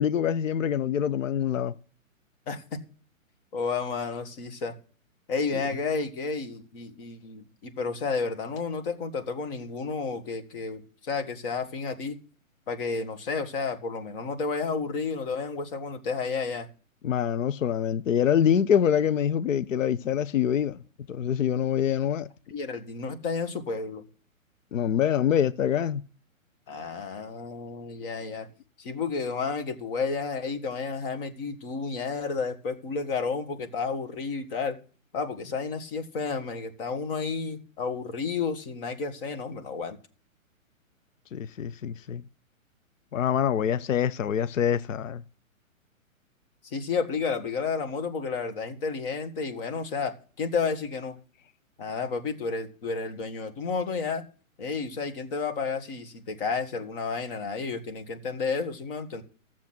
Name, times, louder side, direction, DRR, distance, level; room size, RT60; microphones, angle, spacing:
voice 1, 0.0-1.7 17.0-20.8 21.1-22.3 24.7-26.0 41.3-42.2 43.1-45.2, left 9 dB, 65° left, 0.8 m, -25 dB
voice 2, 2.5-2.8 3.5-4.8 5.3-12.2 12.7-16.7 22.5-24.0 26.7-28.5 28.8-34.8 35.1-40.0 46.6-51.2 51.8-54.2 54.6-59.2, left 4 dB, 40° left, 2.0 m, -31 dB
13.5 x 7.4 x 6.0 m
hypercardioid pair, 140°, 41 cm